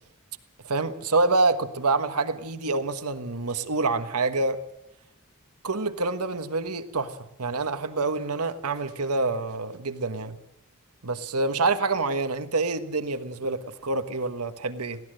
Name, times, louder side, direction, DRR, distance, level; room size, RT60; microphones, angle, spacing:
voice 1, 0.6-4.6 5.6-10.4 11.0-15.0, right 3 dB, 85° right, 1.4 m, -27 dB
22.0 x 16.0 x 7.7 m
head